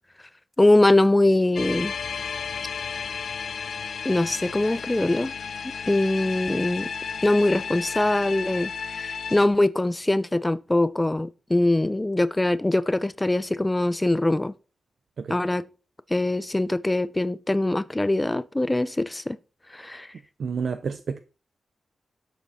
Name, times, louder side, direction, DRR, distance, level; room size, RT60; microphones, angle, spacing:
voice 1, 0.6-1.9 4.0-5.3 5.9-6.9 7.2-14.5 15.3-15.6 16.1-19.4 19.7-20.1, left 1 dB, 10° left, 0.5 m, -22 dB
sound 1, 1.6-9.5, left 6 dB, 60° left, 0.9 m, -33 dB
voice 2, 20.4-21.2, right 5 dB, 55° right, 0.7 m, -30 dB
12.0 x 7.9 x 4.3 m
wide cardioid pair, 175°, 0 cm